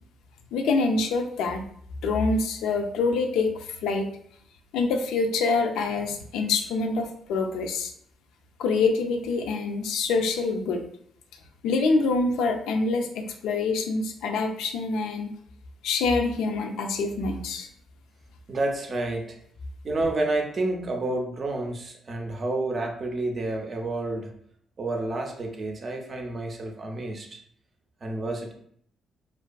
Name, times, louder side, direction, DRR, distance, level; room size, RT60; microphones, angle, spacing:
voice 1, 0.5-1.7 2.0-4.1 4.7-7.9 8.6-10.8 11.6-15.3 15.8-17.7, left 3 dB, 85° left, 4 dB, 0.3 m, -25 dB
voice 2, 18.5-19.4 19.8-24.4 24.8-27.4 28.0-28.5, right 2 dB, 40° right, 2 dB, 0.5 m, -29 dB
2.5 x 2.3 x 2.2 m, 0.65 s
cardioid pair, 90°, 0 cm